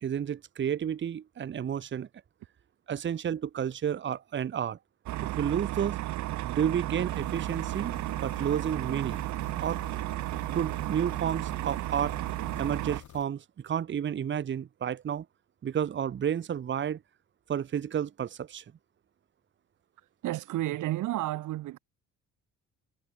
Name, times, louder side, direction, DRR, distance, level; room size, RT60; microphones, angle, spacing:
voice 1, 0.0-2.1 2.9-4.8 5.2-6.0 6.4-9.2 9.6-9.8 10.5-12.1 12.6-15.3 15.6-17.0 17.5-18.6, right 9 dB, 40° right, 0.8 m, -31 dB
sound 1, 5.1-13.0, right 16 dB, 70° right, 0.5 m, -33 dB
sound 2, 7.1-13.2, left 11 dB, 75° left, 6.1 m, -50 dB
voice 2, 20.2-21.8, right 15 dB, 90° right, 4.1 m, -31 dB
cardioid pair, 90°, 30 cm